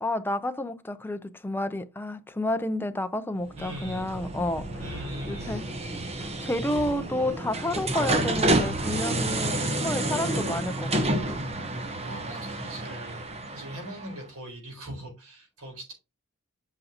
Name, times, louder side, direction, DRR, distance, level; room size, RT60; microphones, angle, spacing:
voice 1, 0.0-4.7 5.3-5.7 6.4-11.2, left 1 dB, 10° left, 0.5 m, -30 dB
sound 1, 3.4-14.2, right 1 dB, 30° right, 0.9 m, -30 dB
voice 2, 3.6-4.1 4.8-5.5 8.1-8.5 9.4-9.9 12.0-15.9, right 1 dB, 75° right, 4.3 m, -41 dB
8.2 x 5.4 x 2.8 m
head